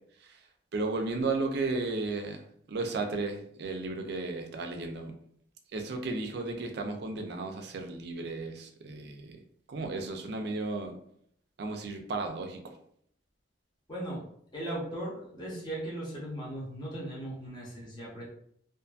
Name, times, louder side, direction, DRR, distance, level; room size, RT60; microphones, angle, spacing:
voice 1, 0.7-5.1 5.7-9.4 9.7-11.0 11.6-12.6, right 3 dB, 55° right, 4 dB, 0.4 m, -34 dB
voice 2, 13.9-14.2 14.5-18.2, right 1 dB, 25° left, -6 dB, 0.8 m, -37 dB
2.5 x 2.5 x 2.3 m, 0.66 s
head